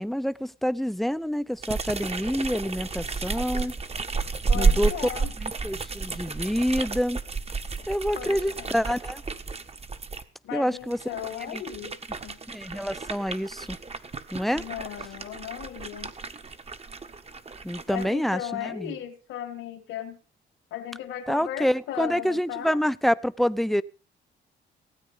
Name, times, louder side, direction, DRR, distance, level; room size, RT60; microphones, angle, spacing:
voice 1, 0.0-3.7 4.5-4.9 5.4-7.2 7.9-9.2 10.5-11.0 11.5-11.6 12.5-13.8 14.3-14.6 17.6-18.9 21.3-23.8, equal, ahead, 0.7 m, -27 dB
sound 1, 1.6-10.2 10.8-18.1, right 4 dB, 30° right, 1.5 m, -31 dB
voice 2, 4.5-5.3 7.8-7.9 8.1-8.8 10.4-11.9 12.2-12.4 14.5-16.1 17.9-20.2 20.7-22.8, left 10 dB, 90° left, 2.5 m, -36 dB
17.0 x 9.1 x 5.6 m
cardioid pair, 90°, 20 cm